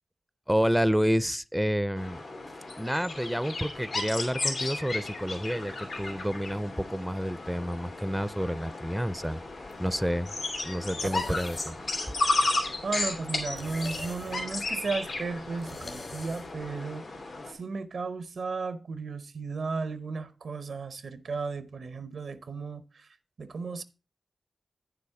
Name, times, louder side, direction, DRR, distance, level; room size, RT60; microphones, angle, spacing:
voice 1, 0.5-2.2 2.8-9.4 9.8-10.3 10.7-11.8, equal, 5° right, 0.4 m, -29 dB
sound 1, 2.0-17.5, left 2 dB, 90° left, 3.1 m, -34 dB
sound 2, 9.1-16.7, left 2 dB, 65° left, 2.2 m, -47 dB
voice 2, 12.8-17.1 17.5-23.8, right 4 dB, 85° right, 0.8 m, -35 dB
9.5 x 6.9 x 4.8 m
cardioid pair, 50°, 0 cm